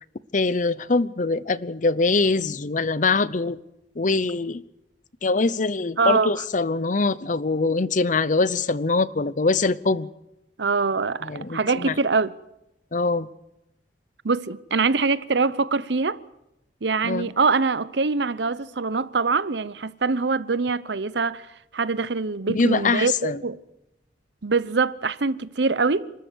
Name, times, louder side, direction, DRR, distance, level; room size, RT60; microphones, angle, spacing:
voice 1, 0.3-3.6 4.0-4.6 5.2-10.1 11.2-12.0 12.9-13.3 17.0-17.3 22.5-23.4, left 3 dB, 45° left, 0.7 m, -23 dB
voice 2, 6.0-6.4 10.6-12.3 14.2-16.2 16.8-21.4 21.7-23.6 24.4-26.1, right 4 dB, 70° right, 0.8 m, -24 dB
28.0 x 13.5 x 8.2 m
head